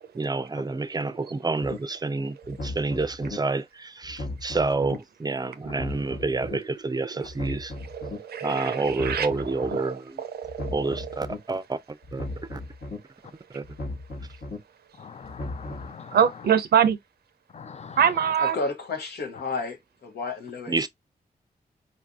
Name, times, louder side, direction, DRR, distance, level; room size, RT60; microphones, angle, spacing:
voice 1, 0.0-7.7 8.4-10.2 10.7-12.6 13.5-13.7 20.7-20.9, right 3 dB, 25° right, 0.4 m, -29 dB
sound 1, 1.6-1.8 2.4-3.4 4.0-5.0 5.6-6.6 7.2-8.2 8.8-9.8 10.4-11.4 12.0-13.0 13.6-14.6 15.2-15.9, left 2 dB, 70° left, 1.1 m, -36 dB
voice 2, 7.2-7.6 7.8-10.8 16.1-17.0 18.0-18.6, right 8 dB, 75° right, 0.5 m, -25 dB
voice 3, 15.0-16.2 17.5-18.3, left 6 dB, 45° left, 0.4 m, -42 dB
voice 4, 18.4-20.7, left 3 dB, 85° left, 0.8 m, -32 dB
3.9 x 2.6 x 2.3 m
cardioid pair, 45°, 16 cm